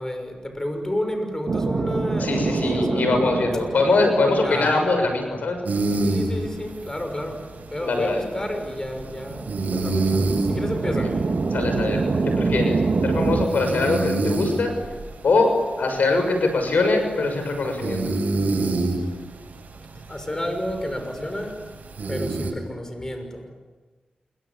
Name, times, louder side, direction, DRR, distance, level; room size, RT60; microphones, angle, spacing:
voice 1, 0.0-3.0 4.4-4.7 6.0-7.4 7.7-10.1 10.5-11.1 20.1-21.6 22.1-23.5, left 1 dB, 20° left, 6 dB, 6.3 m, -30 dB
sound 1, 1.5-13.5, right 4 dB, 60° right, 2.3 m, -26 dB
voice 2, 2.2-5.6 7.8-8.2 10.8-11.1 11.5-12.0 12.4-14.7 15.2-15.5 15.8-18.0, left 3 dB, 80° left, 5 dB, 6.4 m, -22 dB
sound 2, 5.7-22.5, right 2 dB, 80° right, 7.0 m, -29 dB
28.0 x 24.0 x 8.8 m, 1.3 s
wide cardioid pair, 75°, 3 cm